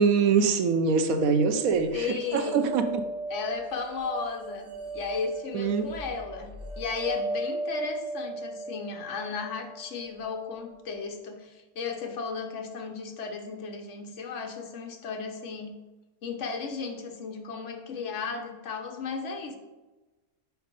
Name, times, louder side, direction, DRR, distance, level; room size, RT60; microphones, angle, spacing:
voice 1, 0.0-3.0 5.5-5.9, right 5 dB, 80° right, 8 dB, 1.1 m, -24 dB
sound 1, 1.2-10.3, right 2 dB, 40° right, 2.0 m, -37 dB
voice 2, 1.9-2.7 3.3-15.7 16.2-19.6, left 5 dB, 60° left, 3 dB, 1.1 m, -35 dB
5.8 x 4.6 x 5.2 m, 1.2 s
omnidirectional pair, 1.5 m